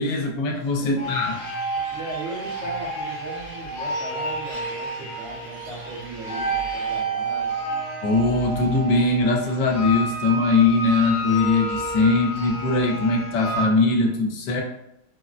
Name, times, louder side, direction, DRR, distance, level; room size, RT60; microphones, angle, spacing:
voice 1, 0.0-1.4 8.0-14.6, left 3 dB, 90° left, 1 dB, 1.2 m, -21 dB
voice 2, 0.8-1.1 1.9-7.6, right 2 dB, 50° right, -7 dB, 0.9 m, -37 dB
sound 1, 1.0-13.7, right 2 dB, 70° left, 0.7 m, -30 dB
sound 2, 1.0-7.0, right 1 dB, 70° right, 1.8 m, -43 dB
3.8 x 2.1 x 2.4 m, 0.86 s
omnidirectional pair, 1.8 m